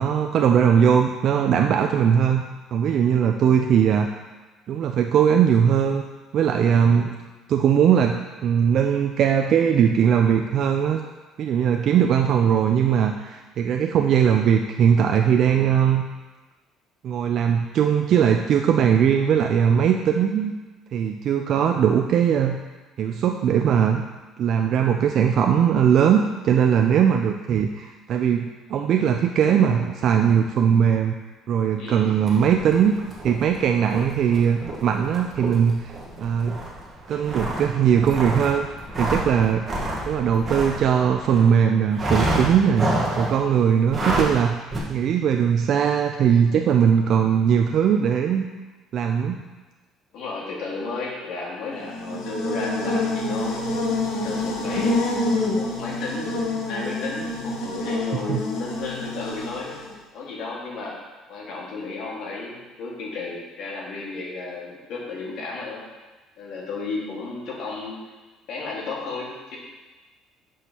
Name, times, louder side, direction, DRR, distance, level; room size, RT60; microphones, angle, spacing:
voice 1, 0.0-2.5 2.7-4.1 4.7-6.0 6.3-7.1 7.5-11.0 11.4-16.1 17.0-20.5 20.9-22.6 23.0-24.0 24.4-31.1 31.5-32.9 33.2-35.9 36.2-36.6 37.1-38.7 39.0-39.6 40.1-42.9 43.2-48.5 48.9-49.4 58.3-58.4, right 8 dB, 50° right, 4 dB, 0.3 m, -20 dB
voice 2, 31.8-32.1 50.1-53.6 54.1-54.9 55.3-59.8 60.1-61.0 61.3-65.8 66.4-68.0 68.5-69.6, left 3 dB, 60° left, -3 dB, 1.7 m, -33 dB
sound 1, 32.3-41.5 41.9-43.4 43.8-44.4 44.7-44.8, right 1 dB, 25° right, 1.3 m, -29 dB
Buzz, 51.8-59.9, left 2 dB, 85° left, 1.1 m, -27 dB
7.0 x 6.2 x 2.9 m, 1.2 s
cardioid pair, 135°, 0 cm